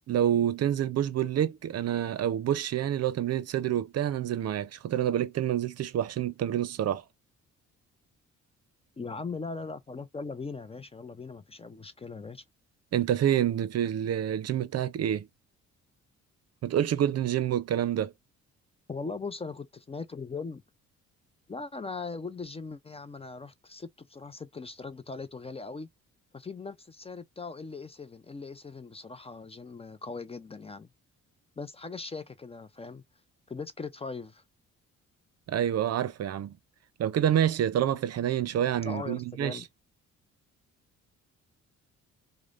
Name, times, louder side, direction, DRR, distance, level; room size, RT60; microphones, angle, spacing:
voice 1, 0.1-7.0 12.9-15.3 16.6-18.1 35.5-36.6 37.0-39.6, right 10 dB, 55° right, 0.6 m, -27 dB
voice 2, 9.0-12.4 18.9-20.6 21.5-25.9 26.3-30.9 31.6-33.0 33.5-34.4 38.9-39.7, left 4 dB, 20° left, 0.4 m, -39 dB
4.8 x 2.1 x 2.4 m
cardioid pair, 90°, 30 cm